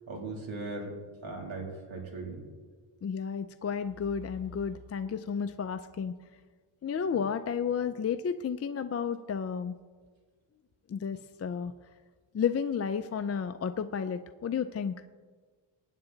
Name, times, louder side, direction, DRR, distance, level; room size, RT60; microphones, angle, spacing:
voice 1, 0.1-0.9 1.2-2.4, right 3 dB, 70° right, 0 dB, 2.9 m, -38 dB
voice 2, 3.0-6.1 6.8-9.7 10.9-11.7 12.3-14.9, left 7 dB, 35° left, 9 dB, 0.4 m, -32 dB
19.5 x 9.0 x 3.9 m, 1.5 s
wide cardioid pair, 130°, 49 cm